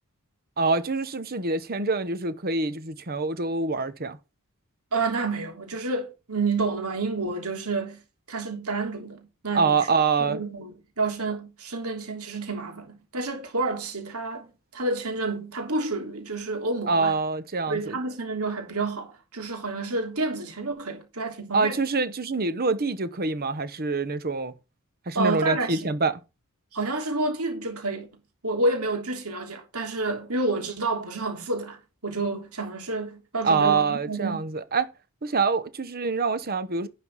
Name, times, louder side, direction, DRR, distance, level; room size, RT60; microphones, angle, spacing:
voice 1, 0.6-4.2 9.5-10.4 16.9-18.0 21.5-24.5 25.1-26.2 33.4-34.9 35.2-36.9, right 4 dB, 45° right, 1.0 m, -25 dB
voice 2, 4.9-8.0 8.3-9.9 10.3-17.1 17.7-21.8 25.1-25.9 26.7-28.1 28.4-34.4, right 3 dB, 85° right, 3.4 m, -29 dB
11.0 x 5.4 x 5.6 m
head